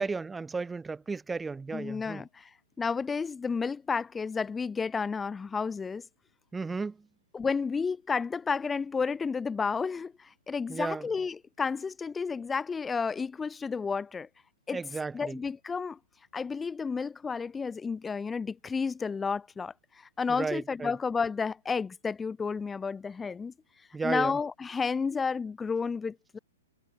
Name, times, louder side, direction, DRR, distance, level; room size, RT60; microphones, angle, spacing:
voice 1, 0.0-2.3 6.5-7.0 10.7-11.1 14.7-15.4 20.3-20.9 23.9-24.4, right 4 dB, 10° right, 4.1 m, -34 dB
voice 2, 1.7-2.5 2.8-6.0 7.3-14.3 14.7-14.8 15.1-16.0 16.3-19.7 20.2-23.5 24.0-26.4, left 5 dB, 10° left, 1.2 m, -31 dB
hypercardioid pair, 125°, 0 cm